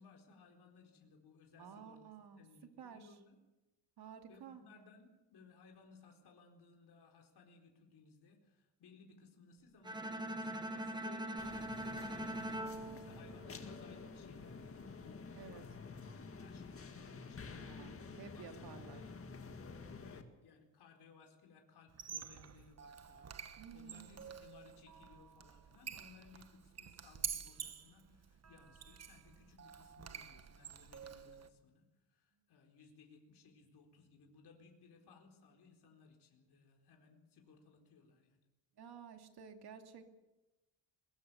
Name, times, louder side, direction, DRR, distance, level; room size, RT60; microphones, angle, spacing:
voice 1, 0.0-2.0 2.4-3.4 4.3-11.8 12.1-19.1 20.0-31.8 32.1-38.4, left 4 dB, 60° left, 3 dB, 4.4 m, -62 dB
voice 2, 1.6-2.4 2.8-3.1 4.0-4.6 12.3-13.0 15.3-15.6 17.5-19.0 23.6-24.2 38.8-40.1, right 7 dB, 60° right, 5 dB, 2.7 m, -53 dB
Bowed string instrument, 9.8-14.0, right 1 dB, 10° right, 1.6 m, -42 dB
sound 1, 11.4-20.2, left 4 dB, 30° left, 2.0 m, -50 dB
Squeak, 21.9-31.5, right 7 dB, 35° right, 1.2 m, -48 dB
22.0 x 21.5 x 7.0 m, 1.0 s
cardioid pair, 145°, 43 cm